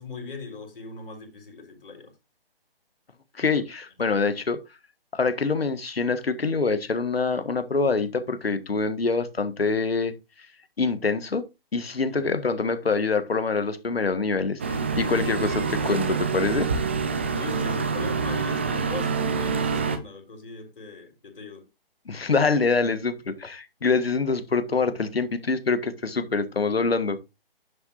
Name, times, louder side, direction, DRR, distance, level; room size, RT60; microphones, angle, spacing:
voice 1, 0.0-2.1 4.1-4.2 12.1-12.3 17.3-21.7, left 4 dB, 65° left, 4.1 m, -40 dB
voice 2, 3.4-4.6 5.1-10.1 10.8-11.4 11.7-16.7 22.0-27.2, left 4 dB, 80° left, 1.5 m, -25 dB
sound 1, 14.6-20.0, right 5 dB, 10° right, 0.4 m, -26 dB
10.5 x 7.3 x 2.5 m
figure-of-eight pair, 150°, 30 cm